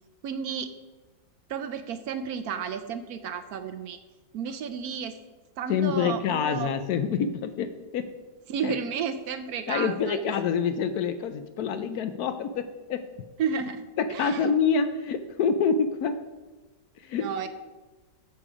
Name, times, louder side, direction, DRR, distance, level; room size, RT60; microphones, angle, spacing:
voice 1, 0.2-0.7 1.5-4.0 4.3-5.2 5.6-6.7 8.5-10.4 13.4-14.5 17.2-17.5, right 6 dB, 70° right, 9 dB, 1.0 m, -32 dB
voice 2, 5.7-8.1 8.6-8.7 9.7-13.1 14.0-16.2 17.0-17.3, left 6 dB, 70° left, 10 dB, 1.0 m, -27 dB
8.8 x 7.0 x 4.9 m, 1.2 s
omnidirectional pair, 1.9 m